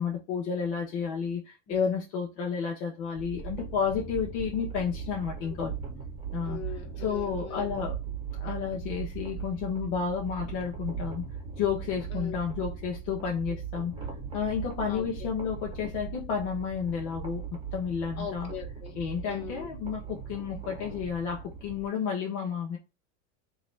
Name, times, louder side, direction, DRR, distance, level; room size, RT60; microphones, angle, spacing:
voice 1, 0.0-1.4 1.7-5.7 6.3-6.6 7.0-7.9 8.4-11.3 11.6-14.0 14.3-17.4 17.7-18.5 18.9-22.8, left 7 dB, 65° left, 1.1 m, -31 dB
sound 1, 3.2-21.9, right 6 dB, 15° right, 1.7 m, -39 dB
voice 2, 6.5-7.8 12.1-12.4 13.5-13.6 14.9-15.3 18.2-18.9 19.3-19.7, left 7 dB, 45° left, 1.8 m, -41 dB
3.1 x 3.0 x 4.5 m
supercardioid pair, 120°, 35 cm